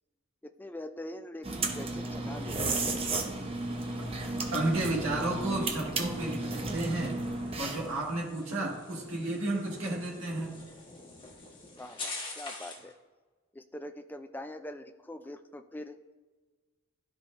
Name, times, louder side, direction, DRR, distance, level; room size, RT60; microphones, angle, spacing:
voice 1, 0.4-2.9 9.8-9.9 11.8-13.0 13.5-16.0, left 1 dB, 10° left, 7 dB, 0.3 m, -43 dB
sound 1, 1.4-8.0, right 2 dB, 30° right, 0.8 m, -34 dB
sound 2, 2.2-12.9, left 3 dB, 25° left, 1.3 m, -48 dB
voice 2, 4.5-7.2 7.6-10.5, right 2 dB, 80° right, -3 dB, 1.7 m, -32 dB
13.0 x 4.8 x 2.5 m, 1.3 s
head